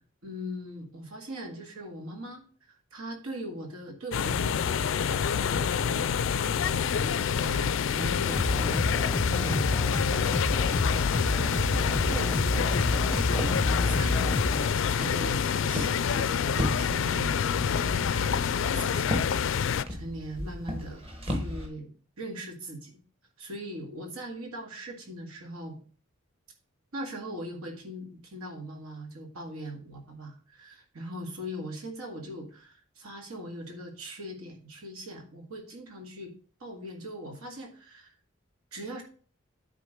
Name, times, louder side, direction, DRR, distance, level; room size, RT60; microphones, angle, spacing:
voice 1, 0.2-2.4 2.9-14.5 14.9-17.3 17.7-19.2 19.9-21.9 22.2-23.0 23.4-25.8 26.9-36.3 36.6-38.1 38.7-39.0, equal, 90° right, 3 dB, 2.0 m, -40 dB
sound 1, 4.1-19.8, left 7 dB, 60° left, 0.3 m, -27 dB
sound 2, 8.3-14.7, left 1 dB, 10° left, 0.6 m, -29 dB
Walk footsteps, 12.3-21.7, equal, 25° right, 1.2 m, -37 dB
9.5 x 3.8 x 5.2 m, 0.42 s
head